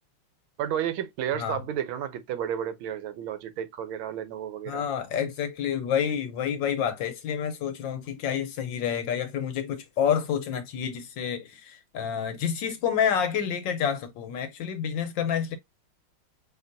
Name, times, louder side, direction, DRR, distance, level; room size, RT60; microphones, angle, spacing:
voice 1, 0.6-4.9, right 10 dB, 75° right, 1.4 m, -32 dB
voice 2, 4.7-15.6, left 8 dB, 70° left, 1.2 m, -28 dB
5.1 x 2.9 x 2.5 m
omnidirectional pair, 2.4 m